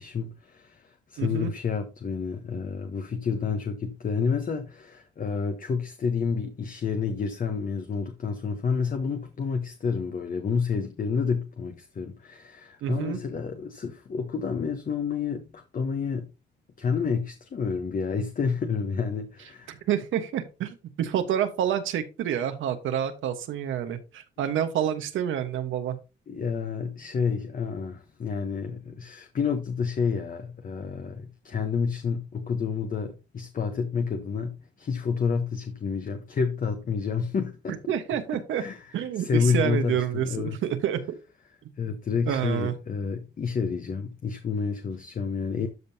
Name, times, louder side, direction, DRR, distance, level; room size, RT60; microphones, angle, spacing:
voice 1, 0.0-16.3 16.8-19.8 26.3-37.9 38.5-40.6 41.8-45.7, left 5 dB, 45° left, 1.1 m, -29 dB
voice 2, 1.2-1.5 12.8-13.2 19.7-26.0 37.9-38.6 38.9-41.2 42.3-42.7, right 9 dB, 80° right, 1.3 m, -28 dB
12.5 x 5.3 x 2.8 m
cardioid pair, 90°, 20 cm